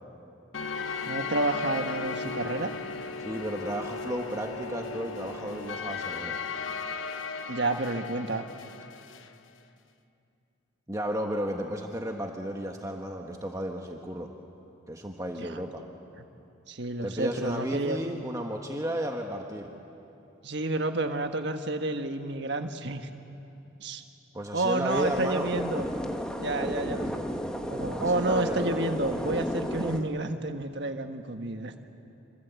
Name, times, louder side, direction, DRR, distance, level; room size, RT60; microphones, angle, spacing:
sound 1, 0.5-9.3, left 4 dB, 70° left, 1.1 m, -36 dB
voice 1, 1.1-2.7 7.5-8.5 15.4-15.6 16.7-18.0 20.4-23.1 23.8-24.0 24.5-25.9 26.4-27.2 27.7-31.7, right 2 dB, 55° right, 6 dB, 1.5 m, -30 dB
voice 2, 3.2-6.4 10.9-14.3 14.9-15.8 17.0-19.7 24.3-25.5 27.9-28.8, equal, 15° right, 2 dB, 1.3 m, -33 dB
sound 2, 24.9-30.0, equal, 5° left, 1.4 m, -33 dB
27.0 x 26.0 x 8.3 m, 2.8 s
head